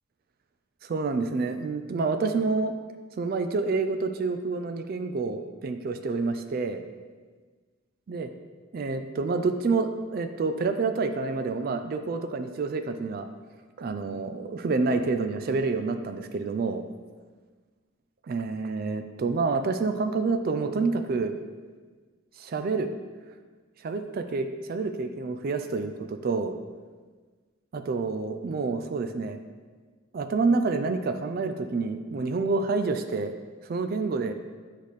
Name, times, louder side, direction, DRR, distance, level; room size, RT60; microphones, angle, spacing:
voice 1, 0.8-2.7 3.2-6.8 8.1-8.3 8.7-13.3 13.8-16.8 18.3-21.3 22.4-22.9 23.8-26.5 27.7-29.4 30.1-33.3 33.7-34.3, right 4 dB, 45° right, 8 dB, 0.3 m, -28 dB
8.3 x 4.1 x 3.2 m, 1.4 s
head